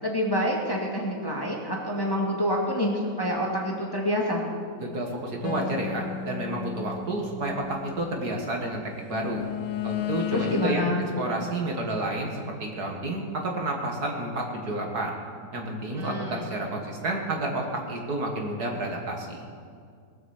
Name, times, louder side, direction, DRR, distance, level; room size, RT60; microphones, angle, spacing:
voice 1, 0.0-4.4 10.3-11.0 16.0-16.6, equal, 10° left, -2 dB, 2.0 m, -27 dB
voice 2, 4.8-9.4 9.8-10.8 11.2-15.1 15.5-19.4, right 1 dB, 55° right, 1 dB, 2.2 m, -30 dB
sound 1, 5.4-8.4 9.1-10.8, left 10 dB, 75° left, 1.4 m, -33 dB
20.0 x 8.2 x 7.2 m, 2.2 s
omnidirectional pair, 2.1 m